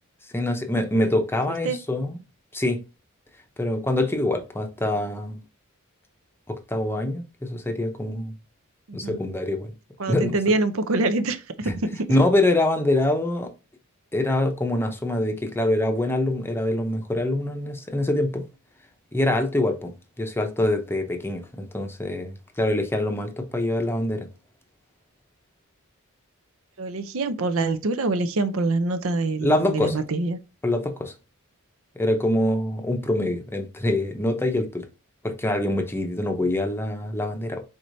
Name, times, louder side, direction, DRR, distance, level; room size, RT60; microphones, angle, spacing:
voice 1, 0.3-2.2 2.5-2.8 3.6-5.4 6.5-8.3 8.9-9.7 10.1-10.4 11.7-11.8 12.1-13.5 14.1-18.4 19.1-19.9 20.2-24.3 29.4-30.0 30.6-31.1 32.0-34.9 35.2-37.6, left 1 dB, 10° left, 0.7 m, -24 dB
voice 2, 10.0-12.1 26.8-30.4, right 2 dB, 65° right, 0.6 m, -25 dB
4.8 x 4.3 x 2.6 m
head